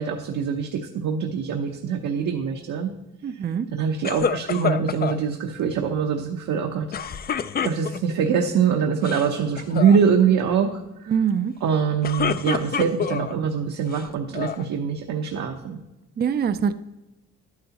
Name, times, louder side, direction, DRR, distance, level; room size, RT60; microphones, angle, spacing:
voice 1, 0.0-2.9 3.2-3.4 3.7-6.9 7.6-11.1 11.6-15.8, right 6 dB, 70° right, 2 dB, 0.9 m, -23 dB
voice 2, 3.2-3.7 11.1-11.5 16.2-16.7, right 7 dB, 35° right, 10 dB, 0.5 m, -23 dB
sound 1, 4.0-5.2 6.9-8.2 8.9-9.3 9.6-10.0 11.8-13.3 13.9-14.7, left 7 dB, 30° left, 0.4 m, -27 dB
11.0 x 9.5 x 2.9 m, 0.98 s
cardioid pair, 90°, 30 cm